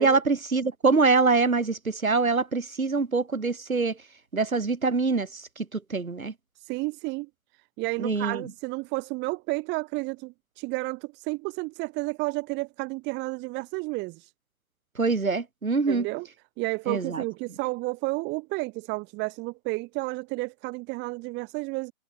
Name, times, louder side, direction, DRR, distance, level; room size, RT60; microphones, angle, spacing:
voice 1, 0.0-4.0 4.3-6.3 8.0-8.4 15.0-16.1 16.9-17.2, right 4 dB, 80° right, 4.7 m, -24 dB
voice 2, 6.5-14.3 15.9-16.3 16.6-21.9, right 24 dB, 25° right, 5.0 m, -31 dB
figure-of-eight pair, 125°, 41 cm